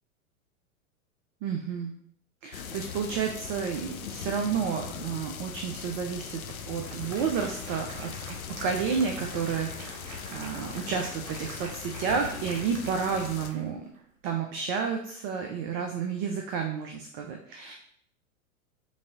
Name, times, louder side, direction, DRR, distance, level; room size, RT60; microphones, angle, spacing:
voice 1, 1.4-1.9 2.4-9.9 10.3-13.9 14.2-17.7, right 6 dB, 30° right, 3 dB, 0.4 m, -31 dB
sound 1, 2.5-13.5, left 7 dB, 90° left, 0.5 m, -40 dB
Applause, 6.1-6.2 6.5-14.0, right 3 dB, 70° right, 1.3 m, -46 dB
5.8 x 2.6 x 2.7 m, 0.64 s
hypercardioid pair, 100°, 41 cm